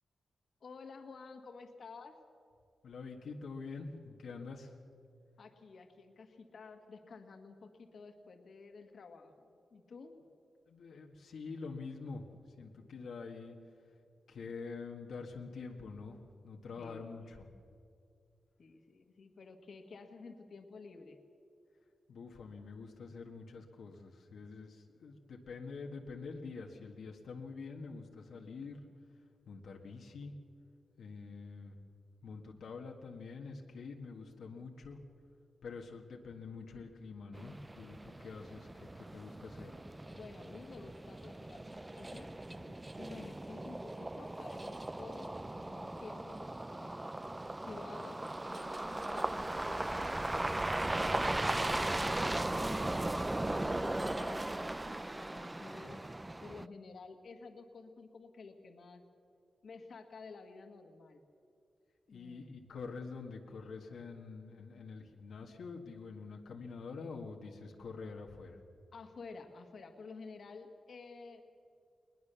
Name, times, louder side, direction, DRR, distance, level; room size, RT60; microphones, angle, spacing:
voice 1, 0.6-2.2 5.4-10.1 16.8-17.1 18.6-21.2 38.4-38.5 40.1-47.0 47.6-48.2 48.5-54.4 55.0-56.1 56.4-59.0 59.6-61.2 62.1-62.5 68.9-71.4, left 4 dB, 60° left, 5 dB, 1.7 m, -52 dB
voice 2, 2.8-4.8 10.7-13.6 14.3-17.5 22.1-28.8 29.5-30.3 31.0-31.8 32.2-35.0 35.6-39.8 62.1-68.6, left 4 dB, 80° left, 2 dB, 1.6 m, -46 dB
sound 1, 37.3-56.7, right 1 dB, 15° right, 0.4 m, -38 dB
20.5 x 20.5 x 6.9 m, 2.5 s
wide cardioid pair, 125°, 0 cm